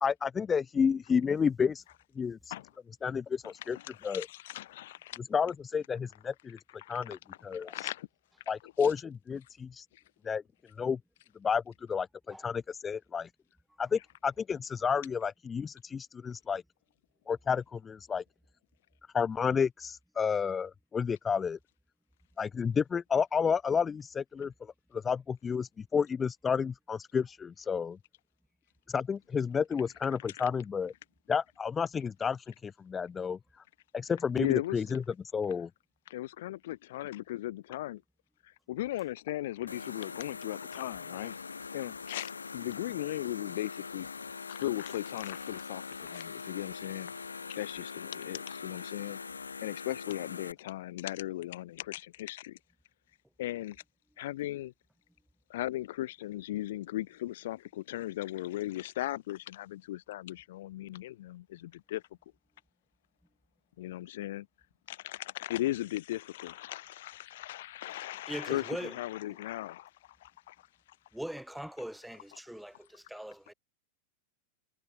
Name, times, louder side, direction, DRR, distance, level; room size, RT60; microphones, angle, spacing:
voice 1, 0.0-1.8 2.2-2.5 3.0-3.8 4.0-4.3 5.3-6.6 6.9-7.9 8.5-9.9 10.2-10.4 10.8-11.0 11.4-11.6 11.9-13.3 13.8-16.6 17.3-18.2 19.1-21.6 22.4-24.5 24.9-28.0 28.9-30.9 31.3-33.4 33.9-35.0 35.3-35.7, left 6 dB, 20° left, 0.8 m, -31 dB
voice 2, 3.6-5.2 6.8-7.2 7.5-8.1 9.9-10.0 30.3-30.4 34.4-34.8 36.1-38.0 38.4-41.4 41.7-44.1 44.5-47.1 47.5-49.2 49.6-52.6 53.4-53.8 54.2-54.7 55.5-62.0 63.8-64.5 64.9-69.9 70.2-70.5, left 15 dB, 55° left, 3.2 m, -37 dB
sound 1, 39.7-50.5, left 5 dB, 75° left, 3.1 m, -42 dB
voice 3, 68.3-69.0 69.2-69.4 71.1-73.5, right 1 dB, ahead, 6.4 m, -41 dB
figure-of-eight pair, 90°, 0 cm